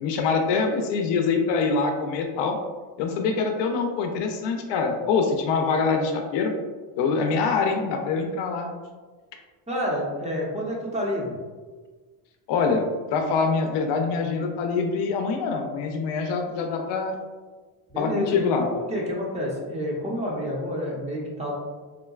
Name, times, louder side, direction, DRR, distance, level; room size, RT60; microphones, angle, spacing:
voice 1, 0.0-2.6 3.0-6.5 7.0-8.7 12.5-12.8 13.1-17.1 18.0-18.7, left 4 dB, 65° left, 3 dB, 0.6 m, -24 dB
voice 2, 9.7-11.3 17.9-18.3 18.7-21.5, equal, 15° right, -4 dB, 0.7 m, -29 dB
3.7 x 2.1 x 2.3 m, 1.4 s
cardioid pair, 105°, 46 cm